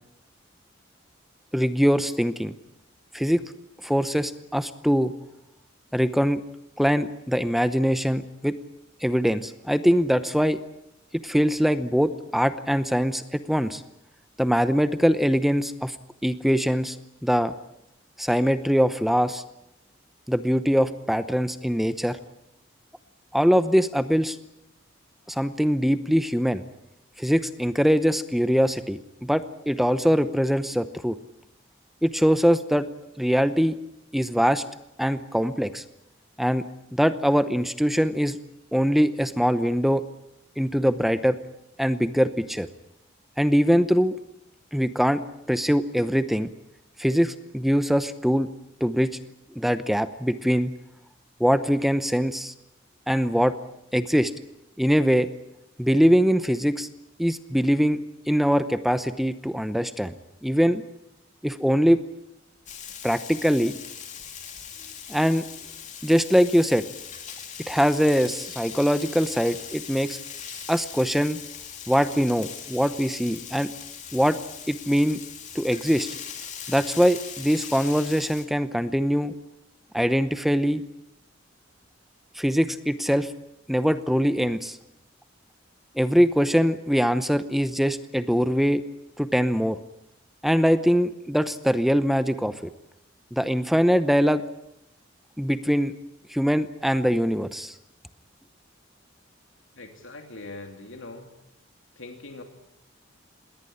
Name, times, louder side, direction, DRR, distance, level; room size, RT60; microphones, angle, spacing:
voice 1, 1.5-2.5 3.1-3.4 3.8-5.1 5.9-6.4 6.8-8.6 9.0-10.6 11.1-13.8 14.4-16.0 16.2-17.0 17.2-17.5 18.2-19.4 20.3-22.2 23.3-24.4 25.3-26.6 27.2-31.2 32.0-32.9 33.2-33.8 34.1-34.6 35.0-35.8 36.4-36.6 36.9-38.4 38.7-40.0 40.6-41.4 41.8-42.7 43.4-44.2 44.7-45.2 45.5-46.5 47.0-48.5 48.8-49.2 49.6-50.7 51.4-52.5 53.1-53.5 53.9-54.3 54.8-55.3 55.8-56.9 57.2-58.0 58.3-60.1 60.4-60.8 61.4-62.0 63.0-63.7 65.1-65.4 66.0-66.8 67.7-70.2 70.7-71.4 71.9-73.7 74.1-74.4 74.7-75.2 75.5-76.1 76.7-79.3 79.9-80.8 82.4-83.3 83.7-84.8 86.0-88.8 89.2-89.8 90.4-92.5 93.3-94.4 95.4-95.9 96.3-97.7, equal, ahead, 12 dB, 0.7 m, -22 dB
Frying (food), 62.7-78.4, left 8 dB, 40° left, 2.9 m, -40 dB
voice 2, 99.7-101.3 102.0-102.4, left 2 dB, 80° left, 4 dB, 2.7 m, -41 dB
20.5 x 18.0 x 10.0 m, 0.85 s
head